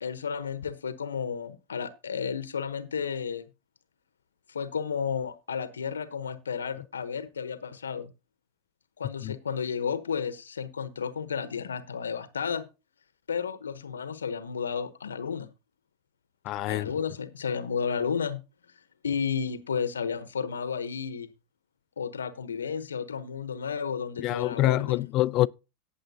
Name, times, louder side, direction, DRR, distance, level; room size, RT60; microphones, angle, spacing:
voice 1, 0.0-3.4 4.5-8.1 9.0-12.7 13.3-15.5 16.7-18.4 19.0-21.3 22.0-25.1, left 6 dB, 85° left, 0.9 m, -32 dB
voice 2, 16.5-16.9 24.2-25.5, left 16 dB, 45° left, 0.4 m, -26 dB
18.0 x 7.1 x 2.8 m
hypercardioid pair, 90°, 0 cm